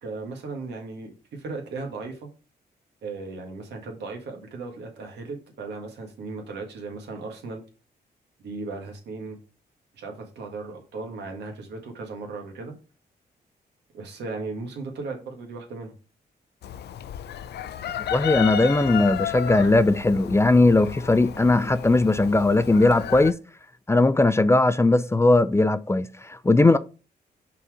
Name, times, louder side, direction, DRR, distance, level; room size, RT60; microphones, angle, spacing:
voice 1, 0.0-2.3 3.0-7.6 8.4-9.4 9.9-12.7 13.9-15.9, right 3 dB, 85° right, 1.7 m, -36 dB
Chicken rooster, 16.6-23.3, left 10 dB, 75° left, 0.5 m, -33 dB
voice 2, 18.1-23.3 23.9-26.8, left 2 dB, 15° left, 0.4 m, -19 dB
5.7 x 4.1 x 4.8 m
cardioid pair, 80°, 17 cm